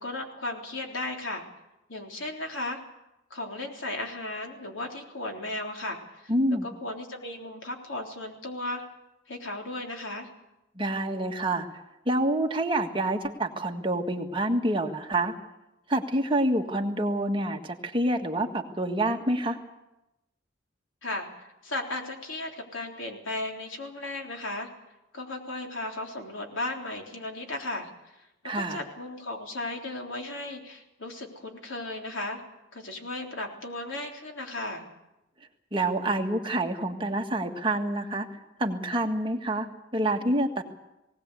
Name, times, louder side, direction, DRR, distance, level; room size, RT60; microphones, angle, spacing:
voice 1, 0.0-1.4 1.9-2.8 3.3-6.3 6.6-8.8 9.3-10.3 21.0-24.7 25.1-27.9 28.5-32.4 32.7-34.9, left 2 dB, 85° left, 2 dB, 3.7 m, -35 dB
voice 2, 6.3-6.7 10.8-11.7 12.1-15.3 15.9-19.6 28.4-28.8 35.7-38.3 38.6-40.6, right 1 dB, 25° right, 3 dB, 1.7 m, -27 dB
19.0 x 18.5 x 8.2 m, 0.91 s
head